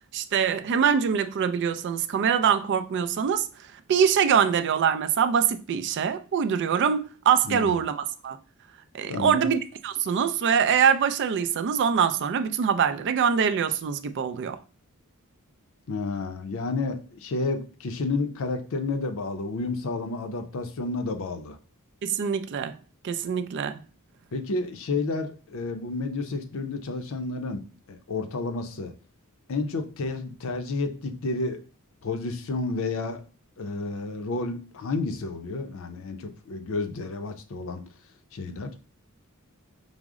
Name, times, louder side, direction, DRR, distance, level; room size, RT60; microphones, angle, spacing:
voice 1, 0.1-3.5 3.9-8.4 8.9-14.6 22.0-22.8 23.0-23.8, right 7 dB, 55° right, 0.3 m, -24 dB
voice 2, 7.4-7.7 9.1-9.5 15.9-21.6 24.3-28.9 29.5-31.6 32.0-33.2 33.6-37.8 38.3-38.7, left 3 dB, 65° left, 0.5 m, -31 dB
4.9 x 2.0 x 3.5 m
head